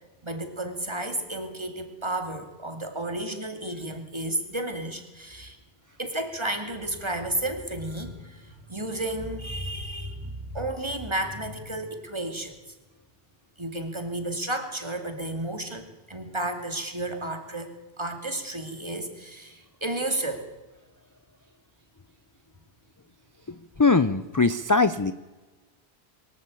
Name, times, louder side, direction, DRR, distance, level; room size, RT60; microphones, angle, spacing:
voice 1, 0.2-5.6 6.0-12.6 13.6-20.5, right 1 dB, 25° right, 6 dB, 2.5 m, -32 dB
voice 2, 23.8-25.1, left 3 dB, 25° left, 13 dB, 0.4 m, -21 dB
23.0 x 13.5 x 8.4 m, 1.2 s
omnidirectional pair, 1.1 m